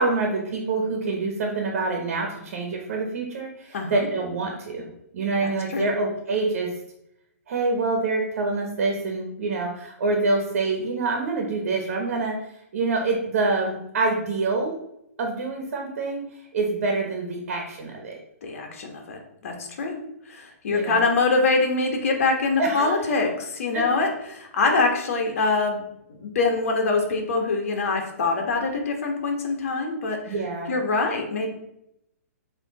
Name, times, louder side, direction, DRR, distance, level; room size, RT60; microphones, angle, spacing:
voice 1, 0.0-4.9 5.1-6.7 7.5-12.4 12.7-14.7 15.2-16.2 16.5-18.2 20.7-21.1 22.6-23.1 23.7-23.9 30.3-30.7, right 3 dB, 55° right, 1 dB, 1.4 m, -26 dB
voice 2, 3.7-4.1 5.4-5.9 18.4-25.8 26.1-30.3 30.7-31.5, left 3 dB, 60° left, 3 dB, 1.5 m, -24 dB
7.3 x 3.3 x 4.1 m, 0.80 s
hypercardioid pair, 150°, 8 cm